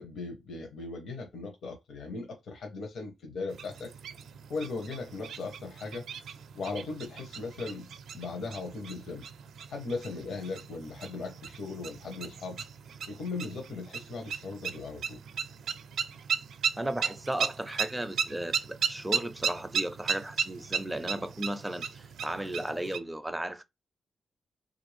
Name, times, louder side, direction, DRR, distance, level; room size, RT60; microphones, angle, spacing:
voice 1, 0.0-3.9 4.5-6.1 6.5-7.9 8.1-9.3 9.7-12.6 13.1-15.2, left 3 dB, 65° left, 0.8 m, -38 dB
sound 1, 3.5-23.0, right 7 dB, 80° right, 0.4 m, -36 dB
voice 2, 16.8-23.6, right 1 dB, 10° right, 0.4 m, -35 dB
3.2 x 2.5 x 3.1 m
wide cardioid pair, 140°, 0 cm